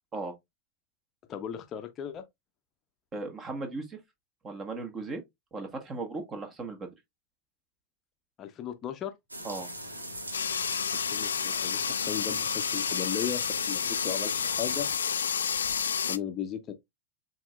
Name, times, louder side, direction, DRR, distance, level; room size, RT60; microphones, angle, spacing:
voice 1, 1.3-2.2 8.4-9.1 10.9-13.4 13.7-14.9 16.1-16.7, left 9 dB, 30° left, 0.7 m, -36 dB
voice 2, 3.1-4.0 4.4-5.2 5.5-6.9 9.4-9.7, right 3 dB, 25° right, 1.4 m, -36 dB
sound 1, 9.3-14.9, right 1 dB, 80° right, 1.0 m, -40 dB
sound 2, 10.3-16.2, left 7 dB, 70° left, 0.3 m, -30 dB
7.0 x 2.8 x 2.4 m
figure-of-eight pair, 90°, 0 cm